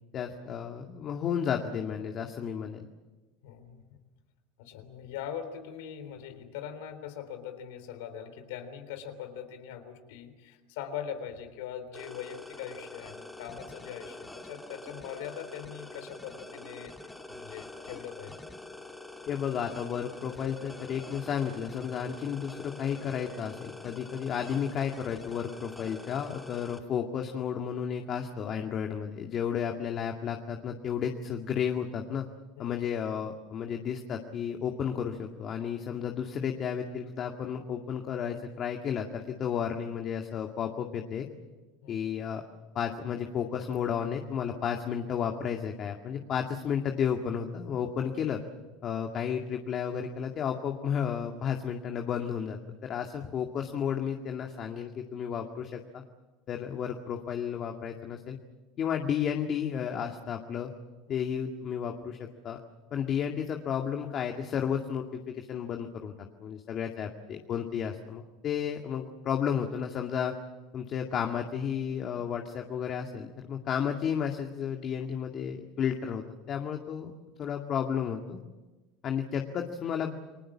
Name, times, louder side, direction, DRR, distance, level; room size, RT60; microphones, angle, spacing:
voice 1, 0.1-2.9 19.3-32.3 32.6-41.3 41.9-42.4 42.7-48.4 48.8-56.0 56.5-58.4 58.8-60.7 61.1-62.6 62.9-70.3 70.7-77.1 77.4-78.4 79.0-80.2, left 8 dB, 45° left, 3 dB, 2.1 m, -32 dB
voice 2, 3.4-4.0 4.6-18.4 32.6-32.7 41.8-42.1 61.1-61.2, left 9 dB, 80° left, 8 dB, 3.6 m, -41 dB
sound 1, 11.9-26.8, left 2 dB, 5° left, 2.8 m, -46 dB
29.5 x 20.0 x 7.4 m, 1.2 s
supercardioid pair, 110°, 0 cm